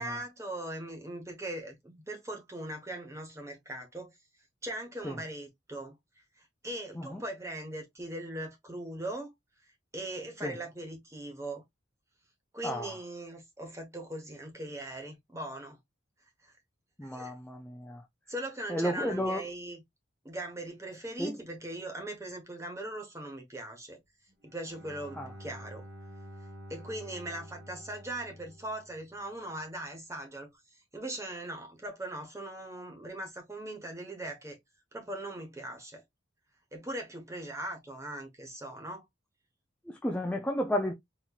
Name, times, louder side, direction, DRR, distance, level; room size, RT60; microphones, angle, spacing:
voice 1, 0.0-4.1 4.6-6.0 6.4-9.3 9.9-11.6 12.5-15.8 16.4-16.5 17.1-17.3 18.3-19.8 20.2-24.0 24.4-25.9 26.7-30.5 30.9-34.6 34.9-36.0 36.7-39.0, right 1 dB, 15° right, 1.0 m, -40 dB
voice 2, 12.6-13.0 17.0-18.0 18.7-19.4 21.2-21.4 25.1-25.3 39.9-40.9, equal, 5° left, 0.3 m, -32 dB
Bowed string instrument, 24.4-29.4, equal, 50° right, 1.4 m, -49 dB
4.2 x 3.0 x 2.3 m
head